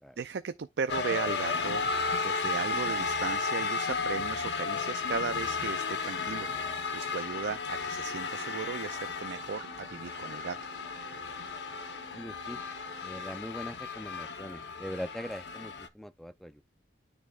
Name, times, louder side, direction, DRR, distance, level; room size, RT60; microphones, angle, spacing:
voice 1, 0.2-1.8 2.2-6.5 6.9-10.6, right 5 dB, 75° right, 0.5 m, -36 dB
sound 1, 0.9-15.9, left 4 dB, 75° left, 0.9 m, -34 dB
Wind instrument woodwind instrument, 6.3-13.9, right 5 dB, 50° right, 1.6 m, -51 dB
voice 2, 12.1-12.6 13.0-16.6, equal, ahead, 0.4 m, -41 dB
12.5 x 4.2 x 2.4 m
head